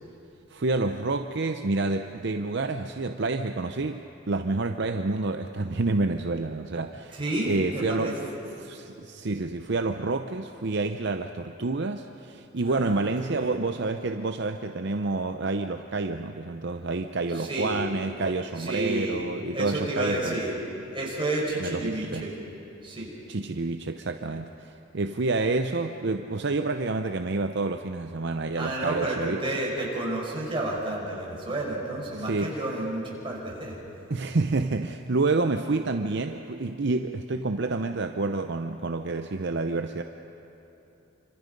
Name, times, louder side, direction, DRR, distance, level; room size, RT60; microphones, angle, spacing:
voice 1, 0.5-7.2 7.5-8.2 8.6-20.4 21.6-22.3 23.3-29.4 32.1-32.5 34.1-40.0, right 3 dB, 55° right, 6 dB, 0.7 m, -28 dB
voice 2, 7.1-8.3 12.6-13.6 17.3-17.8 18.6-19.2 19.5-20.6 20.9-22.4 22.8-23.1 28.6-33.8, right 1 dB, 25° right, -3 dB, 5.0 m, -31 dB
27.5 x 25.5 x 5.3 m, 2.9 s
head